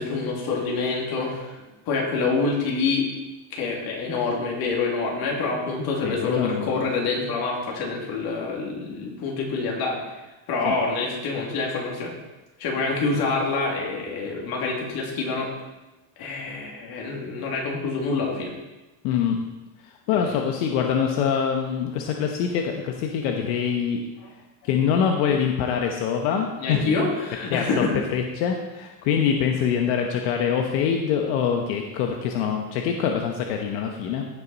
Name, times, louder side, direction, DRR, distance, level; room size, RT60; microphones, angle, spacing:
voice 1, 0.0-3.1 3.5-10.0 10.5-12.1 12.6-15.5 16.2-18.5 20.1-20.4 26.6-28.0, left 4 dB, 50° left, 0 dB, 2.6 m, -26 dB
voice 2, 6.0-6.8 10.7-10.8 19.0-19.4 19.8-24.0 24.6-26.8 27.5-27.8 28.1-34.3, left 7 dB, 80° left, 3 dB, 1.1 m, -24 dB
16.0 x 5.9 x 4.1 m, 1.1 s
cardioid pair, 160°, 48 cm